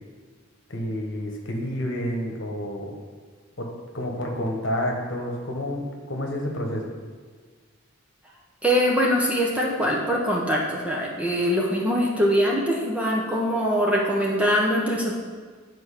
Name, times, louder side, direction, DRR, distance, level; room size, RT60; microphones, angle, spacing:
voice 1, 0.7-2.9 3.6-3.7 3.9-6.9, equal, 60° left, 1 dB, 1.3 m, -29 dB
voice 2, 8.6-15.2, equal, 5° right, -3 dB, 0.9 m, -23 dB
7.9 x 4.5 x 6.5 m, 1.5 s
head